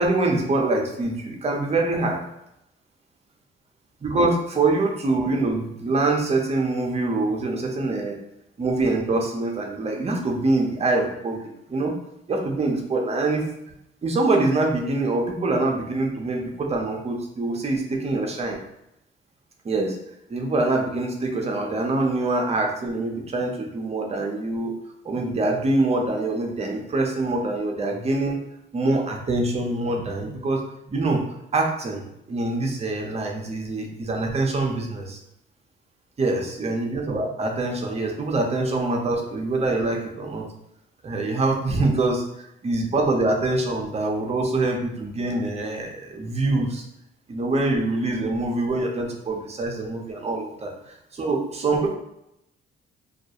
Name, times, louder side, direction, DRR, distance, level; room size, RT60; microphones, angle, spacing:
voice 1, 0.0-2.2 4.0-8.2 8.6-11.9 12.3-13.4 14.0-18.6 19.6-20.0 20.3-24.7 25.0-28.4 28.7-30.6 30.9-31.2 31.5-32.0 32.3-35.2 36.2-40.5 41.0-42.2 42.6-46.8 47.3-50.7 51.1-51.9, right 2 dB, 30° right, 1 dB, 0.6 m, -24 dB
2.3 x 2.1 x 2.7 m, 0.82 s
cardioid pair, 90°, 20 cm